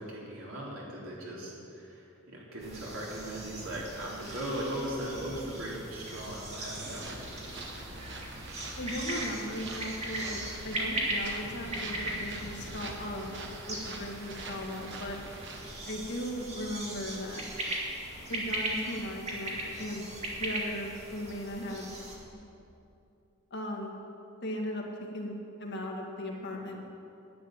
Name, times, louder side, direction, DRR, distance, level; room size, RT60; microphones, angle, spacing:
voice 1, 0.0-7.2, right 1 dB, 75° right, -5 dB, 3.7 m, -38 dB
sound 1, 2.6-22.2, right 1 dB, 30° right, 2.3 m, -39 dB
sound 2, 6.7-15.7, right 2 dB, 60° right, 1.5 m, -44 dB
voice 2, 8.8-13.4 13.6-15.2 15.9-17.6 18.3-20.1 20.4-21.9 23.5-23.9 24.4-24.8 25.1-26.8, equal, 55° left, 0 dB, 1.9 m, -37 dB
11.0 x 9.1 x 9.0 m, 2.7 s
head